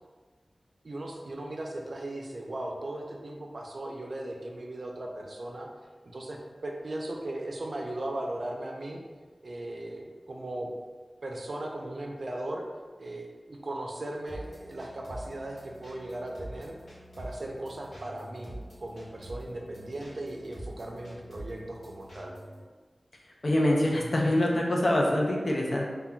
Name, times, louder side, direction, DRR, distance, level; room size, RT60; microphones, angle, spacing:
voice 1, 0.8-5.7 6.1-9.0 9.4-10.7 11.2-12.6 13.0-16.7 17.2-22.4, right 1 dB, 65° right, 0 dB, 0.4 m, -37 dB
sound 1, 14.3-22.6, right 1 dB, 80° left, 0.9 m, -46 dB
voice 2, 23.4-25.9, left 1 dB, 55° left, -2 dB, 0.5 m, -25 dB
3.6 x 2.3 x 2.2 m, 1.4 s
wide cardioid pair, 50°, 0 cm